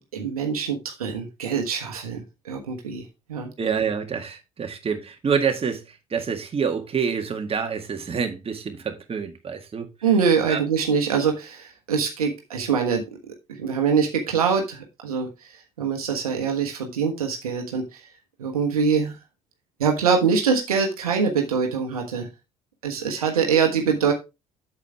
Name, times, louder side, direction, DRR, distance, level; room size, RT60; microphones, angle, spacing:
voice 1, 0.0-3.0 3.3-3.5 10.0-13.0 13.6-15.3 15.8-17.8 18.4-19.2 19.8-22.3 22.8-24.1, right 6 dB, 80° right, 1.3 m, -23 dB
voice 2, 3.6-9.9 10.5-10.6 23.1-23.3, right 6 dB, 30° right, 1.8 m, -27 dB
8.2 x 7.4 x 3.4 m
figure-of-eight pair, 55°, 19 cm